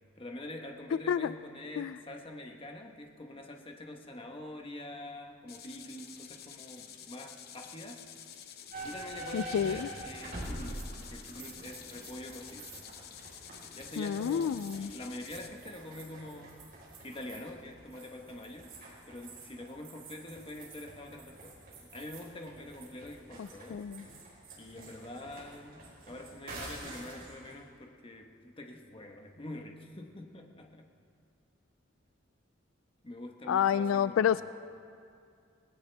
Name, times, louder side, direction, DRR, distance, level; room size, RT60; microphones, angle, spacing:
voice 1, 0.1-8.2 8.8-12.7 13.7-16.6 17.0-18.8 19.1-23.9 24.6-30.9 33.0-34.4, left 1 dB, 30° left, 3 dB, 1.1 m, -45 dB
sound 1, 5.5-15.5, left 9 dB, 55° left, 0.8 m, -50 dB
sound 2, 8.7-27.5, right 2 dB, 50° right, 4.4 m, -47 dB
voice 2, 9.3-9.9 14.0-14.9 23.4-24.0 33.5-34.4, left 8 dB, 85° left, 15 dB, 0.3 m, -29 dB
19.5 x 17.5 x 3.4 m, 2.4 s
head